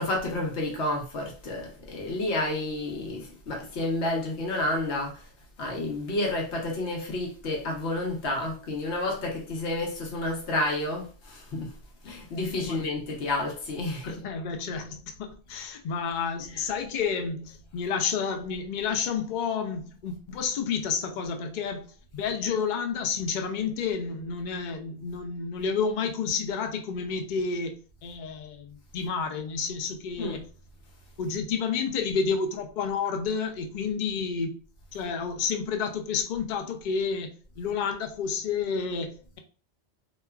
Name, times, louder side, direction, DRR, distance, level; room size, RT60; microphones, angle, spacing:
voice 1, 0.0-5.3 5.6-11.7 12.0-14.2 30.2-30.4, left 2 dB, 80° left, 1.1 m, -30 dB
voice 2, 14.0-30.4 31.2-34.6 34.9-39.4, left 5 dB, 60° left, 0.5 m, -30 dB
3.0 x 2.2 x 2.2 m
omnidirectional pair, 1.1 m